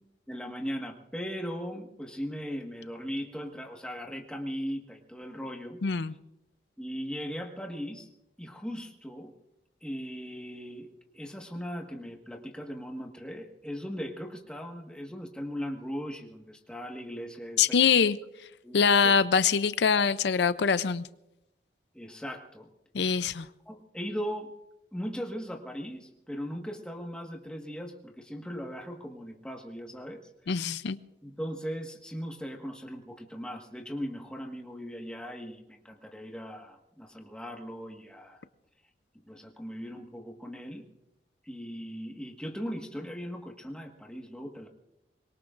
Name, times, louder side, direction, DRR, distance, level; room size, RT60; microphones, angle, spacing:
voice 1, 0.3-5.8 6.8-8.1 8.4-9.3 9.8-10.9 11.1-17.8 18.6-19.1 21.9-22.7 23.6-24.5 24.9-30.5 31.2-38.4 39.1-40.8 41.4-44.7, equal, 5° left, 1 dB, 1.5 m, -38 dB
voice 2, 5.8-6.1 17.6-18.2 18.7-21.1 22.9-23.5 30.5-31.0, left 6 dB, 75° left, 14 dB, 0.5 m, -24 dB
25.0 x 22.0 x 2.5 m, 0.90 s
head